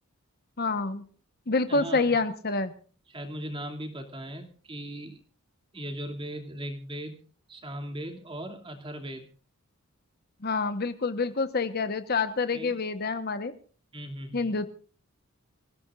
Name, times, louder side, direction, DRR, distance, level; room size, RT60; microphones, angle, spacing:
voice 1, 0.6-1.0 1.5-2.7 10.4-13.5 14.3-14.7, left 3 dB, 50° left, 10 dB, 1.1 m, -27 dB
voice 2, 1.7-2.1 3.1-5.2 5.7-7.2 7.5-9.3 12.5-12.8 13.9-14.5, equal, 25° right, 4 dB, 2.6 m, -38 dB
26.0 x 16.0 x 2.5 m, 0.39 s
head